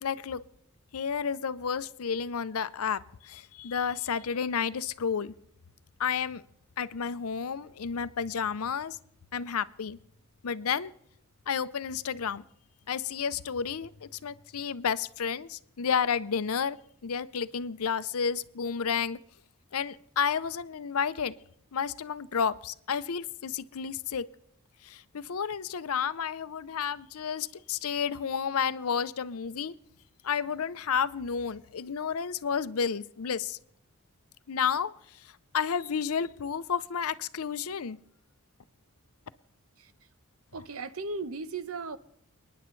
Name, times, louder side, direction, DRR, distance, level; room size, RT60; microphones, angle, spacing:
voice 1, 0.0-0.4 0.9-5.3 6.0-6.4 6.8-9.0 9.3-10.0 10.4-10.9 11.5-12.4 12.9-16.8 17.0-19.2 19.7-21.3 21.7-24.2 24.8-29.7 30.2-33.6 34.5-34.9 35.5-38.0, left 6 dB, 80° left, 0.6 m, -31 dB
voice 2, 40.5-42.0, right 3 dB, 70° right, 0.8 m, -36 dB
29.5 x 10.0 x 3.2 m
head